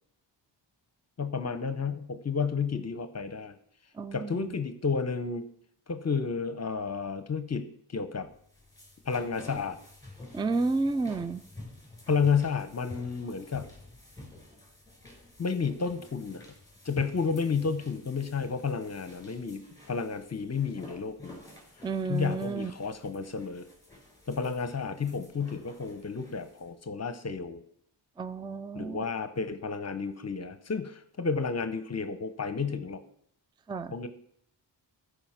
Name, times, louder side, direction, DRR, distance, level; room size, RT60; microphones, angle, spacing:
voice 1, 1.2-3.5 4.1-5.5 5.9-8.3 9.0-9.8 12.1-13.7 15.4-16.4 16.8-19.6 19.9-21.4 22.1-23.7 24.3-27.6 28.7-33.0 33.9-34.1, left 5 dB, 35° left, 10 dB, 0.8 m, -31 dB
voice 2, 4.0-4.5 10.3-11.4 21.8-22.7 28.2-29.0 33.7-33.9, right 3 dB, 10° right, 15 dB, 0.3 m, -31 dB
sound 1, 8.3-26.7, left 2 dB, 10° left, 3.8 m, -49 dB
14.0 x 5.0 x 5.8 m, 0.68 s
wide cardioid pair, 115°, 45 cm